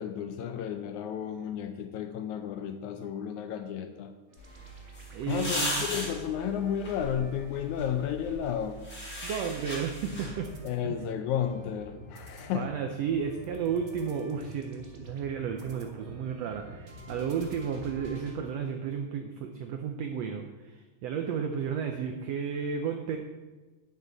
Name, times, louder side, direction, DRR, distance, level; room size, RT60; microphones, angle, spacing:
voice 1, 0.0-4.1 5.3-8.8 10.6-12.7, left 9 dB, 80° left, 8 dB, 1.8 m, -32 dB
sound 1, 4.3-8.4 8.8-18.4, equal, 60° right, 0.7 m, -48 dB
sound 2, 4.4-10.6, equal, 25° left, 2.7 m, -37 dB
voice 2, 5.1-5.9 9.2-10.5 12.5-23.2, right 7 dB, 85° right, 5 dB, 1.4 m, -33 dB
11.0 x 9.6 x 4.0 m, 1.3 s
omnidirectional pair, 3.8 m